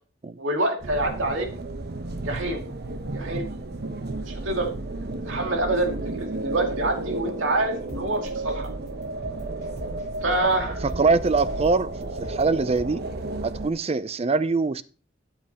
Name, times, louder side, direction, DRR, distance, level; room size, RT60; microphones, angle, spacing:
voice 1, 0.4-1.5 2.2-2.6 3.1-3.6 4.1-4.7 5.3-8.7 10.2-10.8, right 2 dB, 85° right, 2 dB, 2.3 m, -26 dB
sound 1, 0.8-13.7, right 2 dB, 55° right, 0.9 m, -33 dB
sound 2, 7.9-8.0 8.5-8.7 9.0-10.1 10.5-10.6 10.9-11.0 11.5-11.7 12.0-12.4 12.8-12.9, left 1 dB, 40° left, 1.6 m, -39 dB
voice 2, 10.8-13.0 13.4-14.8, right 4 dB, 30° right, 15 dB, 0.4 m, -23 dB
12.0 x 7.6 x 2.9 m, 0.37 s
head